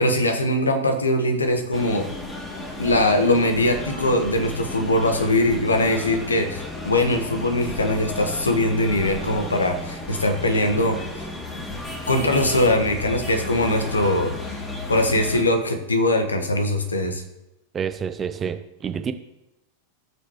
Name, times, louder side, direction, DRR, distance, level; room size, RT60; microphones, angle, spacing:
voice 1, 0.0-2.1 2.8-11.0 12.1-14.4 14.9-17.2, left 1 dB, 80° left, 6 dB, 1.3 m, -21 dB
sound 1, 1.7-15.4, left 1 dB, 20° left, 2.4 m, -34 dB
voice 2, 17.7-19.1, right 7 dB, 25° right, 9 dB, 0.8 m, -28 dB
17.5 x 6.5 x 3.0 m, 0.92 s
figure-of-eight pair, 90°, 0 cm